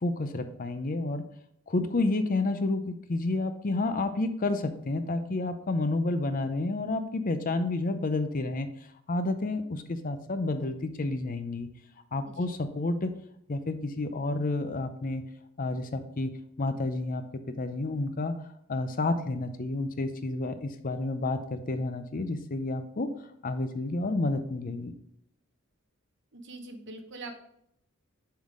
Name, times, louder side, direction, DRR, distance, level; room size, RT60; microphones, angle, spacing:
voice 1, 0.0-1.3 1.7-8.7 9.1-11.7 12.1-13.1 13.5-15.2 15.6-16.3 16.6-17.2 17.6-18.3 18.7-23.1 23.4-24.9, left 2 dB, 40° left, 9 dB, 0.5 m, -30 dB
voice 2, 26.3-27.4, right 2 dB, 55° right, 5 dB, 1.0 m, -43 dB
7.2 x 3.8 x 4.9 m, 0.71 s
head